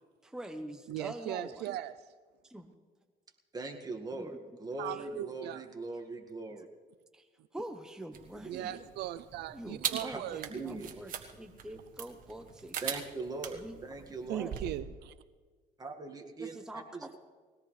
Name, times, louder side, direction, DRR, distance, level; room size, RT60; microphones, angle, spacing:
voice 1, 0.2-1.6 2.4-2.7 4.1-4.4 4.9-5.2 7.1-7.3 7.5-8.8 9.5-11.1 11.4-13.0 13.5-13.8 14.3-14.5 16.4-17.2, right 1 dB, 5° right, 5 dB, 0.9 m, -45 dB
voice 2, 0.9-1.9 4.8-5.7 8.5-10.8 14.3-15.1, right 13 dB, 75° right, 14 dB, 0.5 m, -39 dB
voice 3, 3.5-6.7 8.3-8.8 10.0-10.2 10.5-10.9 12.8-14.5 15.8-17.2, right 2 dB, 20° right, 3 dB, 2.0 m, -41 dB
sound 1, 8.1-14.8, right 8 dB, 55° right, 1.5 m, -42 dB
21.0 x 17.5 x 3.3 m, 1.5 s
cardioid pair, 110°, 17 cm